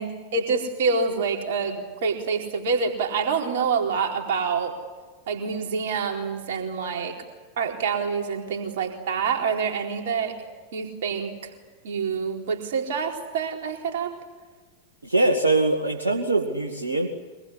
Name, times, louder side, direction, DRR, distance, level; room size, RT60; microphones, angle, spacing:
voice 1, 0.0-4.8 5.3-7.1 7.6-10.4 10.7-11.3 11.8-14.1, right 5 dB, 55° right, 2 dB, 4.3 m, -26 dB
voice 2, 15.0-17.1, right 2 dB, 80° right, 0 dB, 2.1 m, -22 dB
24.5 x 21.0 x 10.0 m, 1.3 s
figure-of-eight pair, 90°, 0 cm